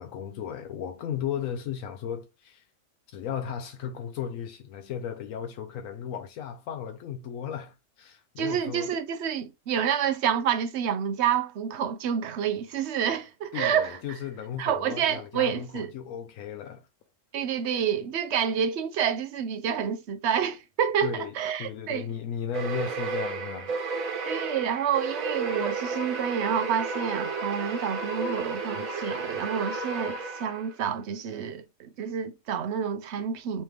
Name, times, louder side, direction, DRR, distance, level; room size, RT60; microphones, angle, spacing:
voice 1, 0.0-2.6 3.1-8.9 13.5-16.9 21.0-23.8, left 8 dB, 80° left, 1.0 m, -35 dB
voice 2, 8.4-14.0 14.6-15.9 17.3-22.1 24.3-33.6, right 8 dB, 65° right, 0.8 m, -28 dB
sound 1, 22.5-30.8, right 4 dB, 90° right, 1.4 m, -32 dB
3.2 x 3.2 x 3.3 m
omnidirectional pair, 1.4 m